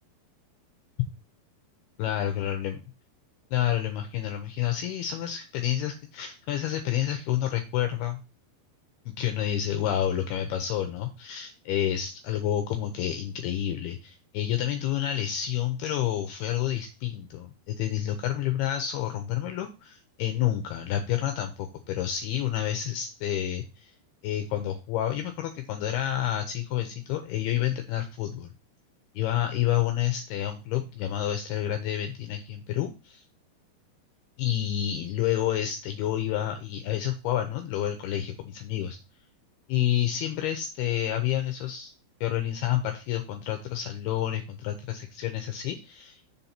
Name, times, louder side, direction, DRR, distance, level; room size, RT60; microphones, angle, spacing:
voice 1, 2.0-2.8 3.5-8.2 9.1-23.9 24.2-28.5 29.2-33.2 34.4-39.0 39.7-41.9 42.2-46.2, left 11 dB, 80° left, 6 dB, 2.4 m, -29 dB
7.1 x 4.2 x 5.7 m, 0.30 s
omnidirectional pair, 5.2 m